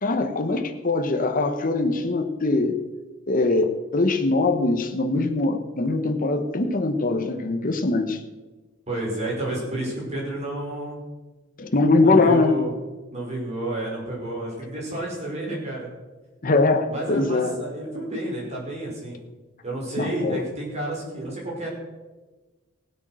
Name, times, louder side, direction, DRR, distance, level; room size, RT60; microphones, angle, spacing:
voice 1, 0.0-2.8 3.3-8.2 11.6-12.6 16.4-17.6 20.0-20.4, left 3 dB, 40° left, 6 dB, 1.0 m, -22 dB
voice 2, 8.9-11.0 12.0-12.7 13.1-15.9 16.9-19.2 19.6-21.7, right 1 dB, 30° right, -4 dB, 5.4 m, -30 dB
16.5 x 8.3 x 6.3 m, 1.2 s
head